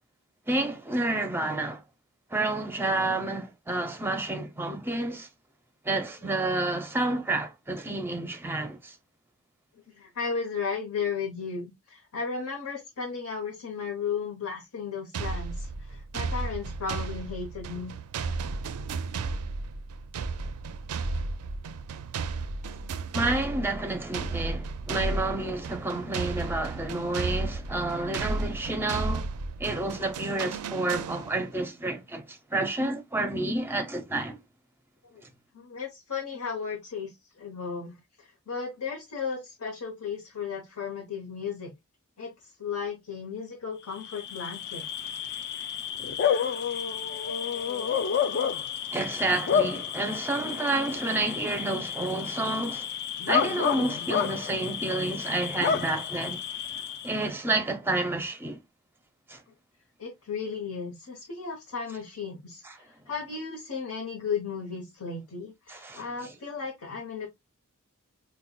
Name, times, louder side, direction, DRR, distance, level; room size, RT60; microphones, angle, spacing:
voice 1, 0.5-1.8 2.3-5.3 5.8-9.0 23.1-29.3 29.6-34.4 48.9-52.9 53.3-56.4 57.0-58.6 59.3-59.4 62.6-62.8 65.7-66.3, right 2 dB, 10° right, 0.5 m, -30 dB
voice 2, 9.9-18.0 35.1-35.2 35.5-41.7 42.2-44.9 47.5-47.9 60.0-67.3, left 5 dB, 70° left, 0.9 m, -35 dB
sound 1, 15.1-31.6, right 3 dB, 80° right, 0.4 m, -34 dB
Bark / Cricket, 44.0-57.3, left 7 dB, 45° left, 0.3 m, -30 dB
5.3 x 2.2 x 2.2 m
head